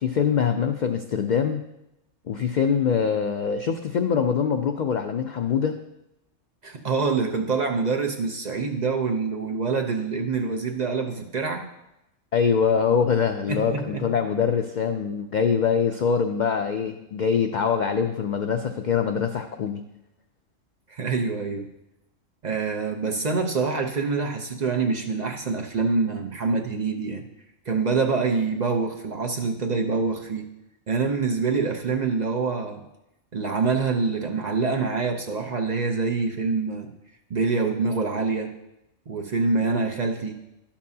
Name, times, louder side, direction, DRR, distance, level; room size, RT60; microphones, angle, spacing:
voice 1, 0.0-1.6 2.3-5.8 12.3-19.8, left 6 dB, 75° left, 6 dB, 0.4 m, -24 dB
voice 2, 6.6-11.6 13.5-14.0 20.9-21.7 22.4-27.3 27.7-30.5 30.9-32.8 33.3-36.9 37.3-38.5 39.1-40.4, right 4 dB, 45° right, 2 dB, 0.6 m, -25 dB
11.5 x 7.2 x 2.7 m, 0.88 s
omnidirectional pair, 1.3 m